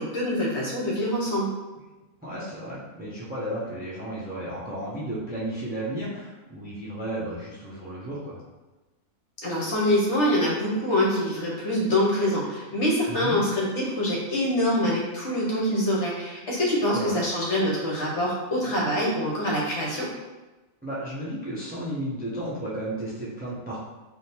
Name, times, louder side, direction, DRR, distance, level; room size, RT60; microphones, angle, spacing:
voice 1, 0.0-1.5 9.4-20.1, equal, 55° left, -4 dB, 1.2 m, -25 dB
voice 2, 2.2-8.4 13.1-13.4 16.9-17.2 20.8-23.8, right 1 dB, 10° right, -7 dB, 0.6 m, -33 dB
3.6 x 2.6 x 4.3 m, 1.1 s
omnidirectional pair, 1.5 m